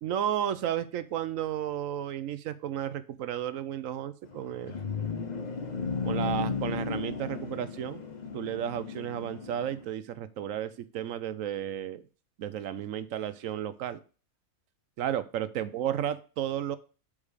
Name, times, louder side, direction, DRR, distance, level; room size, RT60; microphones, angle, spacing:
voice 1, 0.0-4.8 6.0-8.0 8.3-12.0 12.4-14.0 15.0-16.8, right 10 dB, 70° right, 14 dB, 0.9 m, -33 dB
sound 1, 4.2-9.8, left 5 dB, 35° left, 0.9 m, -34 dB
7.3 x 5.0 x 4.8 m, 0.37 s
omnidirectional pair, 1.5 m